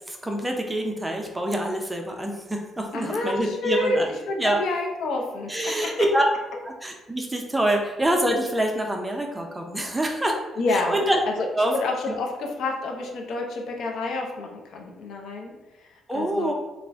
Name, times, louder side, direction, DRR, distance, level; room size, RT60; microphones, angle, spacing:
voice 1, 0.1-4.1 4.4-4.6 5.5-6.3 6.6-10.4 10.7-11.2 11.6-11.8 12.1-12.2 16.1-16.5, right 1 dB, 10° right, 2 dB, 0.5 m, -25 dB
voice 2, 2.9-5.5 10.6-11.1 11.4-11.5 11.8-16.5, left 2 dB, 75° left, 1 dB, 0.5 m, -28 dB
2.4 x 2.1 x 3.4 m, 1.1 s
cardioid pair, 90°, 0 cm